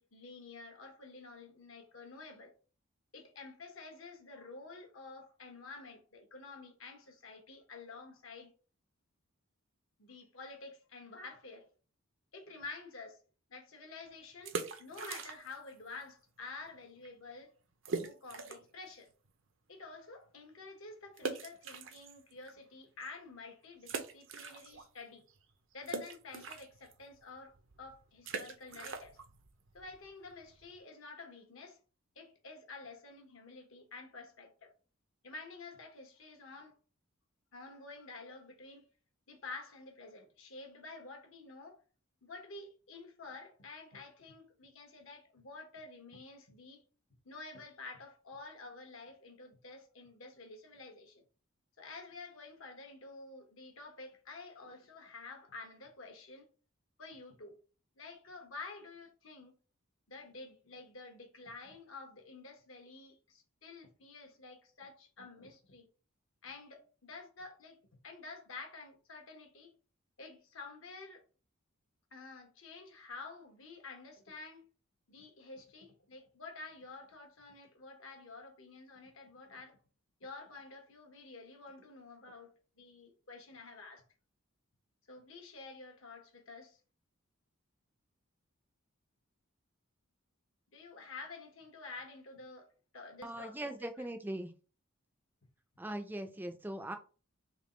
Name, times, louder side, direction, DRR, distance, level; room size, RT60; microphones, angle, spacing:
voice 1, 0.0-2.5 3.1-8.5 10.0-11.7 12.3-13.2 13.5-17.5 17.9-19.1 19.7-25.2 25.7-29.2 29.7-31.8 32.1-34.7 35.2-36.8 37.5-38.9 39.3-41.8 42.2-46.8 47.2-51.2 51.8-56.5 57.0-57.6 58.0-59.6 60.1-65.9 66.4-69.7 70.2-71.2 72.1-74.7 75.1-79.8 80.2-84.0 85.1-86.8 90.7-92.7 92.9-94.1, left 3 dB, 70° left, 1.0 m, -50 dB
sound 1, 14.3-15.7 15.9-16.0 16.6-16.8 17.0-17.1 17.8-18.8 19.2-19.3 21.2-22.5 23.0-23.1 23.8-25.0 25.3-30.8, right 4 dB, 60° right, 0.6 m, -42 dB
voice 2, 93.2-94.5 95.8-96.9, right 1 dB, 10° right, 0.4 m, -40 dB
3.5 x 2.9 x 3.7 m
head